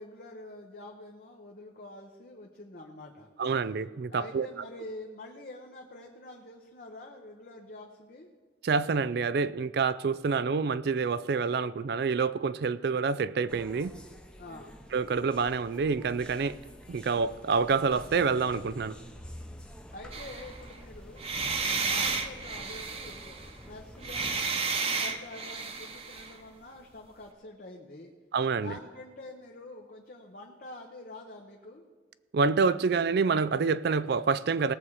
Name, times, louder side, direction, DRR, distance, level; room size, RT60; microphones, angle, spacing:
voice 1, 0.0-3.3 4.1-8.3 14.4-14.8 19.9-21.3 21.7-24.5 24.9-28.1 28.5-31.9, left 2 dB, 55° left, 1 dB, 1.0 m, -46 dB
voice 2, 3.4-4.5 8.6-13.9 14.9-16.6 16.9-19.0 28.3-28.7 32.3-34.7, right 5 dB, 60° right, 16 dB, 0.4 m, -27 dB
sound 1, 13.5-24.4, equal, 5° left, 0.8 m, -48 dB
sound 2, 20.1-20.8 21.2-23.5 24.0-26.4, right 4 dB, 35° right, 1.0 m, -32 dB
18.5 x 7.2 x 4.8 m, 1.5 s
head